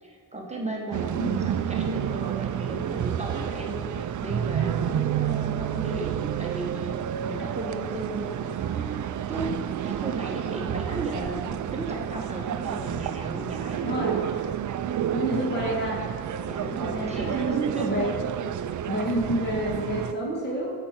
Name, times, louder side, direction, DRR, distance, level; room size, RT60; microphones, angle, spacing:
voice 1, 0.0-14.0 16.4-18.0, right 2 dB, 15° right, -1 dB, 1.2 m, -34 dB
sound 1, 0.9-20.1, right 9 dB, 50° right, 0.5 m, -30 dB
voice 2, 1.1-1.5 13.8-14.1 15.1-16.0 16.8-18.2 18.9-20.7, equal, 25° left, -3 dB, 1.9 m, -29 dB
16.5 x 7.0 x 4.4 m, 2.1 s
wide cardioid pair, 165°, 38 cm